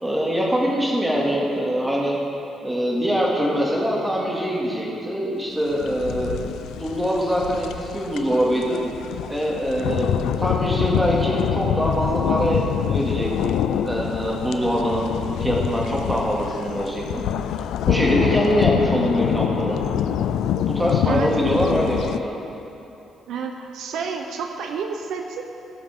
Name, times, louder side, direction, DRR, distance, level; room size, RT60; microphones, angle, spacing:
voice 1, 0.0-2.2 2.6-8.8 9.3-15.1 15.4-17.2 17.9-19.8 20.7-22.3, equal, 10° right, -4 dB, 2.4 m, -23 dB
sound 1, 5.7-22.2, left 9 dB, 85° left, 0.3 m, -25 dB
voice 2, 23.3-25.4, right 6 dB, 80° right, 4 dB, 0.8 m, -30 dB
18.0 x 7.1 x 3.7 m, 2.8 s
cardioid pair, 90°, 0 cm